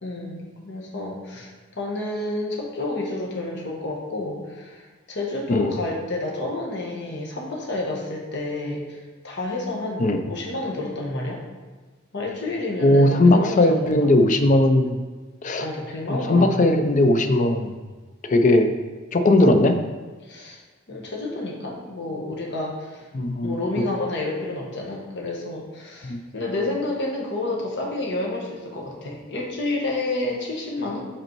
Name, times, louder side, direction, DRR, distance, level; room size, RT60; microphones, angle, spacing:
voice 1, 0.0-11.4 12.1-14.1 15.6-16.7 20.2-20.6 20.9-23.1 23.4-31.1, left 2 dB, 60° left, -1 dB, 1.2 m, -30 dB
voice 2, 12.8-15.0 15.4-15.7 16.1-17.7 18.3-18.7 19.1-19.8 23.1-23.6 26.0-26.2, left 1 dB, 40° left, 7 dB, 0.5 m, -18 dB
5.2 x 4.2 x 4.5 m, 1.3 s
head